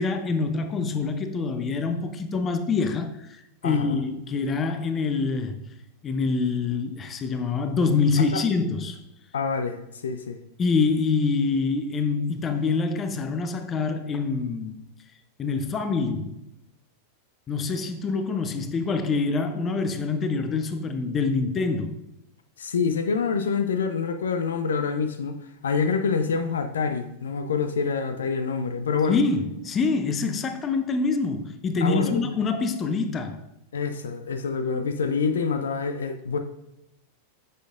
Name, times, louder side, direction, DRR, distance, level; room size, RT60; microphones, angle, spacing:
voice 1, 0.0-3.2 3.6-5.6 6.0-9.0 10.6-14.8 15.4-16.4 17.5-22.0 29.1-33.4, left 4 dB, 25° left, 0.6 m, -25 dB
voice 2, 3.6-4.0 8.2-8.4 9.3-10.4 22.6-29.2 31.8-32.4 33.7-36.4, left 5 dB, 65° left, 0.5 m, -26 dB
9.1 x 6.6 x 2.5 m
figure-of-eight pair, 90°, 0 cm